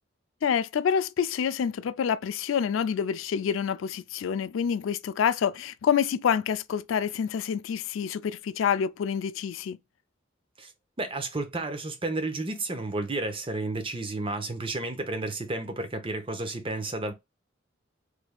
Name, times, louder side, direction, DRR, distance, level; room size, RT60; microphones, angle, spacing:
voice 1, 0.4-9.8, left 7 dB, 90° left, 0.4 m, -27 dB
voice 2, 11.0-17.1, right 2 dB, 30° right, 0.8 m, -32 dB
3.4 x 3.3 x 2.3 m
head